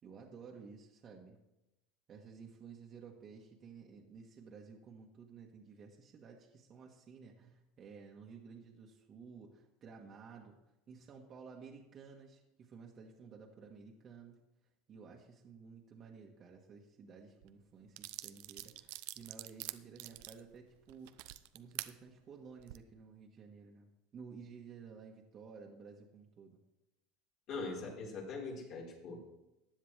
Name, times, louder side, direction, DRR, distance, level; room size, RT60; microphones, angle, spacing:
voice 1, 0.0-1.4 2.1-10.6 10.9-14.4 14.9-26.6, right 5 dB, 35° right, -1 dB, 1.5 m, -54 dB
sound 1, 17.4-17.5 18.0-21.9 22.5-22.8, right 19 dB, 70° right, 0.5 m, -45 dB
voice 2, 27.5-29.2, left 3 dB, 50° left, -3 dB, 4.4 m, -42 dB
15.0 x 10.0 x 3.4 m, 0.94 s
supercardioid pair, 120°, 0 cm